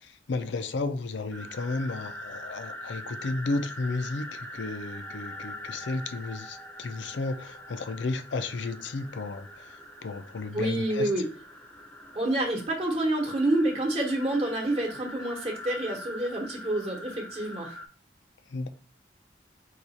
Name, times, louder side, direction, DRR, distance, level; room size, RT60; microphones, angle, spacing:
voice 1, 0.0-9.8 10.0-11.1 18.5-18.7, left 3 dB, 75° left, 0.5 m, -33 dB
sound 1, 1.3-17.9, left 1 dB, 5° left, 0.6 m, -43 dB
voice 2, 10.5-11.3 12.1-17.8, right 1 dB, 30° right, 1.0 m, -28 dB
4.6 x 2.4 x 4.1 m
head